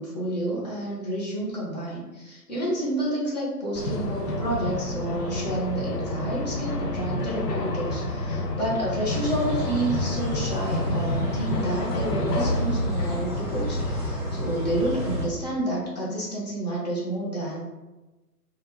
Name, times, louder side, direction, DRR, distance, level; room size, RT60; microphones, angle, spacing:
voice 1, 0.0-17.6, right 1 dB, 25° left, -5 dB, 0.7 m, -29 dB
sound 1, 3.7-14.2, left 1 dB, 75° left, 0.7 m, -30 dB
sound 2, 9.1-15.3, equal, 15° right, 0.6 m, -30 dB
3.3 x 2.4 x 2.8 m, 1.1 s
figure-of-eight pair, 145°, 48 cm